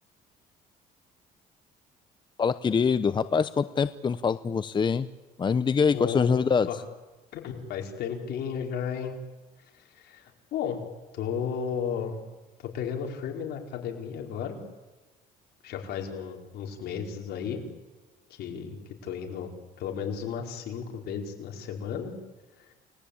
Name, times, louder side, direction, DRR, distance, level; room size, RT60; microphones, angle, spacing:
voice 1, 2.4-5.1 5.4-6.7, left 5 dB, 25° left, 13 dB, 0.8 m, -24 dB
voice 2, 5.9-6.3 6.7-6.8 7.3-9.2 9.8-10.8 11.1-12.2 12.7-14.6 15.6-17.6 18.3-18.8 19.0-19.5 19.8-22.1 22.7-22.8, left 7 dB, 75° left, 2 dB, 4.8 m, -34 dB
29.5 x 20.0 x 8.7 m, 1.2 s
cardioid pair, 110°, 17 cm